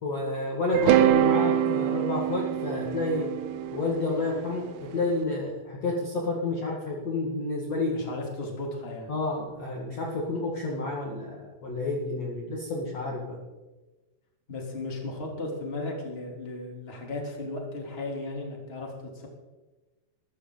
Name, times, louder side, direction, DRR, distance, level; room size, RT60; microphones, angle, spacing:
voice 1, 0.0-3.3 3.7-7.9 9.1-13.4, left 2 dB, 45° left, -2 dB, 2.7 m, -30 dB
sound 1, 0.7-4.9, right 11 dB, 90° right, 1.7 m, -24 dB
voice 2, 7.9-9.1 14.5-19.3, left 2 dB, 15° left, -1 dB, 3.0 m, -35 dB
22.5 x 14.0 x 4.0 m, 1.2 s
omnidirectional pair, 4.8 m